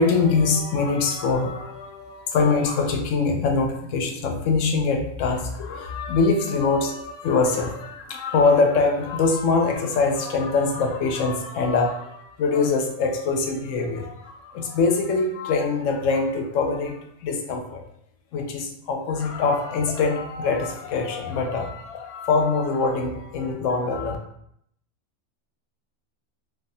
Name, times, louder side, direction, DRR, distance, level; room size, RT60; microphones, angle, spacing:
voice 1, 0.0-17.8 18.3-24.2, left 4 dB, 70° left, 3 dB, 0.9 m, -23 dB
3.3 x 2.3 x 2.6 m, 0.72 s
omnidirectional pair, 1.4 m